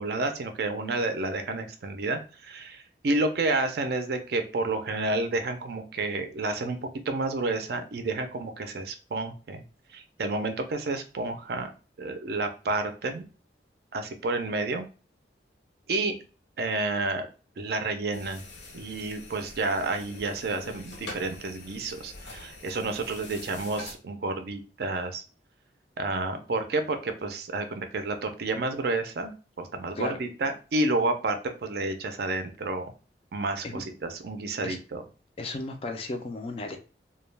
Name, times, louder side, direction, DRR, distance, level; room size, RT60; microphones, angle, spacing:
voice 1, 0.0-6.8 7.1-9.6 9.9-11.7 12.0-13.2 13.9-14.9 15.9-16.2 16.6-17.3 17.6-18.4 18.7-25.2 26.0-32.9 33.3-35.0, right 2 dB, 60° right, 7 dB, 0.4 m, -30 dB
sound 1, 18.1-24.0, left 2 dB, 70° left, 0.7 m, -44 dB
voice 2, 35.4-36.8, left 2 dB, 35° left, 5 dB, 0.4 m, -34 dB
2.2 x 2.1 x 3.1 m, 0.35 s
head